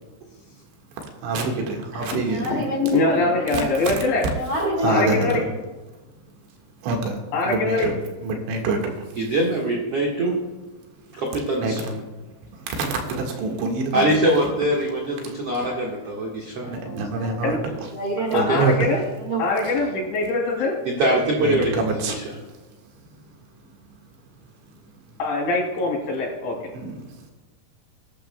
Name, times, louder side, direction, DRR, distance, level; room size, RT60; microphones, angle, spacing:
voice 1, 1.0-2.5 3.2-4.0 4.8-5.4 6.8-9.2 11.1-11.2 11.6-14.5 15.2-15.9 16.6-17.9 18.3-18.9 19.6-19.9 21.4-22.4 22.7-24.0 24.8-25.2 26.7-27.3, right 3 dB, 90° right, 2 dB, 4.1 m, -28 dB
voice 2, 1.9-3.7 4.3-5.1 16.6-18.5 19.0-19.7, equal, 50° right, -1 dB, 1.6 m, -28 dB
voice 3, 2.5-4.3 4.8-5.5 7.3-7.9 17.4-17.6 18.3-19.0 19.4-20.8 25.2-26.7, left 3 dB, 85° left, -2 dB, 5.5 m, -23 dB
voice 4, 9.2-10.4 11.2-11.8 13.9-16.7 18.3-18.6 20.8-21.7, right 1 dB, 70° right, -2 dB, 1.4 m, -22 dB
20.5 x 11.5 x 2.2 m, 1.2 s
omnidirectional pair, 5.2 m